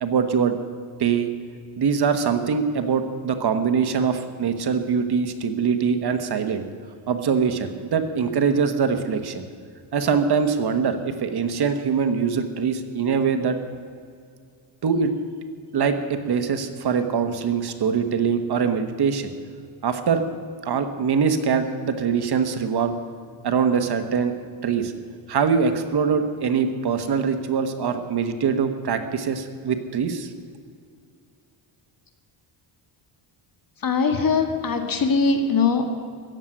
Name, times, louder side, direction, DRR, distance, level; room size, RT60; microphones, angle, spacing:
voice 1, 0.0-0.6 1.0-1.3 1.8-6.6 7.1-9.4 9.9-13.6 14.8-15.1 15.7-19.3 19.8-20.3 20.6-22.9 23.4-24.3 24.6-24.9 25.3-30.3, right 6 dB, 50° right, 8 dB, 1.2 m, -23 dB
voice 2, 33.8-35.9, left 4 dB, 40° left, 5 dB, 1.9 m, -21 dB
15.5 x 7.4 x 9.9 m, 2.2 s
cardioid pair, 115°, 50 cm